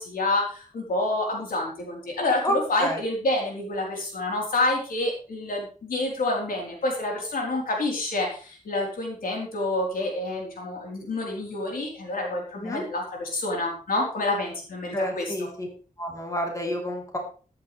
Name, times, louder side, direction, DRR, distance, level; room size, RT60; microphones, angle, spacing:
voice 1, 0.0-15.5, left 2 dB, 90° left, 0 dB, 4.3 m, -28 dB
voice 2, 14.9-15.7 16.0-17.2, equal, 25° left, 0 dB, 3.9 m, -29 dB
14.0 x 11.0 x 3.5 m, 0.38 s
wide cardioid pair, 125°, 14 cm